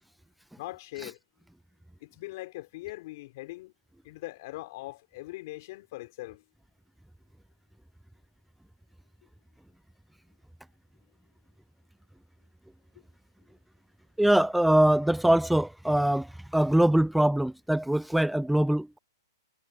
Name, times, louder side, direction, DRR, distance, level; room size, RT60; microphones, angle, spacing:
voice 1, 0.6-1.2 2.0-3.7 4.0-6.4, left 19 dB, 45° left, 4.3 m, -41 dB
voice 2, 14.2-19.0, right 1 dB, ahead, 0.5 m, -23 dB
hypercardioid pair, 140°, 2 cm